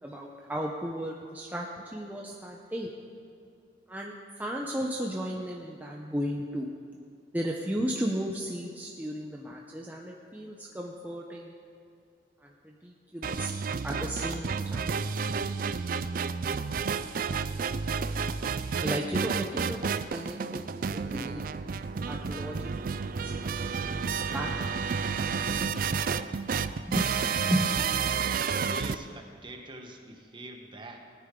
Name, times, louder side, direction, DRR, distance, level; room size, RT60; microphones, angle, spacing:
voice 1, 0.0-1.7 1.9-2.9 3.9-4.1 4.4-6.7 7.3-11.5 12.4-13.5 13.8-15.0 18.8-21.6 22.0-24.5 24.8-24.9 26.6-27.1 27.4-27.7, equal, 10° right, -1 dB, 0.7 m, -35 dB
sound 1, 13.2-28.9, right 5 dB, 50° right, 0.4 m, -31 dB
voice 2, 26.8-27.9 28.3-31.0, right 1 dB, 30° right, 3 dB, 1.2 m, -45 dB
19.5 x 9.8 x 3.8 m, 2.4 s
head